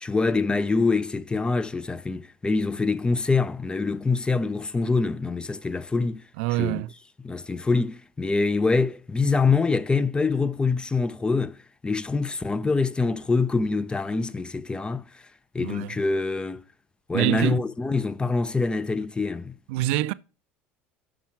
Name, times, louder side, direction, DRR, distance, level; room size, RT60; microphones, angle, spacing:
voice 1, 0.0-6.2 6.6-6.8 7.2-11.6 11.8-15.0 15.5-16.6 17.1-19.6, left 4 dB, 15° left, 0.5 m, -25 dB
voice 2, 6.4-6.9 15.6-15.9 17.1-17.6 19.7-20.1, right 16 dB, 75° right, 0.4 m, -25 dB
6.2 x 5.9 x 5.7 m
supercardioid pair, 95°, 6 cm